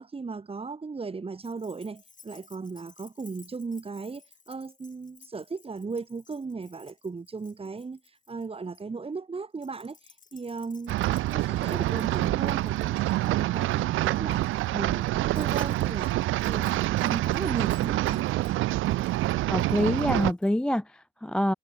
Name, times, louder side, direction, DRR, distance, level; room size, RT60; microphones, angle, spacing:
voice 1, 0.0-8.0 8.3-16.1 16.4-18.2, right 4 dB, 30° right, 4.1 m, -36 dB
Keys jangling, 1.4-8.8 9.6-20.5, left 6 dB, 40° left, 5.0 m, -57 dB
sound 1, 10.9-20.3, right 17 dB, 85° right, 0.7 m, -26 dB
voice 2, 19.4-21.5, left 1 dB, 5° left, 0.3 m, -26 dB
cardioid pair, 90°, 20 cm